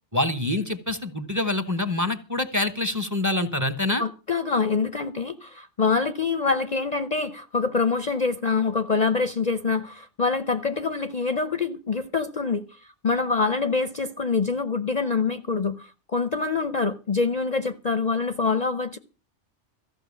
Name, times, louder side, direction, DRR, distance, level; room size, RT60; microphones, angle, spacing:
voice 1, 0.1-4.0, left 2 dB, 15° right, 1.1 m, -26 dB
voice 2, 4.0-12.6 13.0-19.0, left 4 dB, 40° left, 0.7 m, -25 dB
15.0 x 6.1 x 8.4 m
omnidirectional pair, 1.2 m